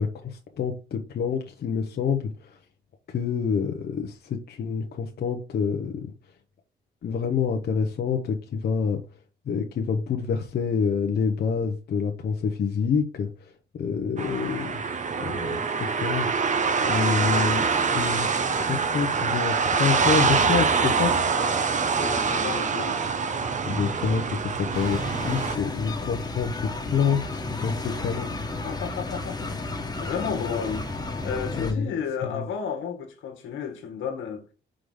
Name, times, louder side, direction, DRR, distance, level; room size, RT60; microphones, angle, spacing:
voice 1, 0.0-2.6 3.1-6.1 7.0-9.0 9.5-13.3 13.7-16.5 16.8-17.7 17.9-18.3 18.6-21.2 23.6-28.3 31.6-31.9 32.2-32.5, left 6 dB, 55° left, 0.9 m, -27 dB
sound 1, 14.2-25.6, right 5 dB, 40° right, 0.9 m, -25 dB
voice 2, 22.0-23.1 28.6-30.9 31.2-34.5, left 7 dB, 80° left, 1.5 m, -32 dB
sound 2, 24.7-31.7, left 2 dB, 20° left, 1.5 m, -32 dB
5.0 x 3.8 x 4.9 m
cardioid pair, 95°, 20 cm